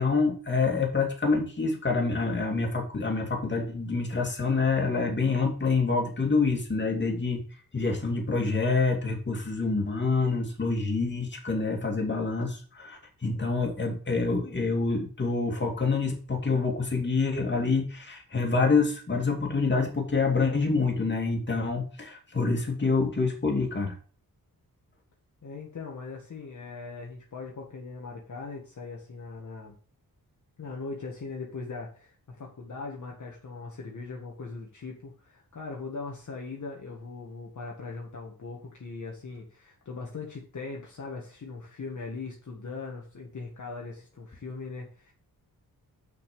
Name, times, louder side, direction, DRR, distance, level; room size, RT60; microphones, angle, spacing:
voice 1, 0.0-7.4 7.7-23.9, left 4 dB, 30° left, 1 dB, 2.6 m, -27 dB
voice 2, 25.4-29.8 30.6-45.1, left 4 dB, 50° left, -1 dB, 1.9 m, -40 dB
6.3 x 5.9 x 6.9 m, 0.40 s
wide cardioid pair, 110°, 37 cm